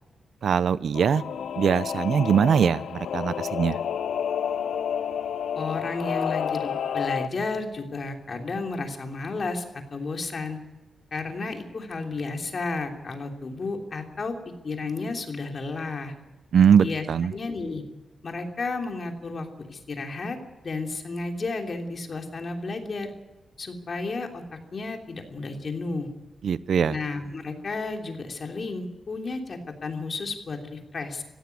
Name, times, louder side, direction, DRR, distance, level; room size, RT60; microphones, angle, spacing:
voice 1, 0.4-1.2 1.6-3.8 16.5-17.3 26.4-27.0, right 7 dB, 65° right, 17 dB, 0.6 m, -21 dB
Singing / Musical instrument, 0.9-7.3, left 8 dB, 90° left, 0.7 m, -30 dB
voice 2, 5.5-10.6 11.1-14.3 14.6-16.1 16.8-17.1 17.3-17.8 18.2-20.4 20.6-23.1 23.6-24.4 24.7-26.1 26.9-31.2, left 3 dB, 40° left, 3 dB, 3.1 m, -32 dB
17.5 x 15.5 x 9.7 m, 1.1 s
wide cardioid pair, 135°, 0 cm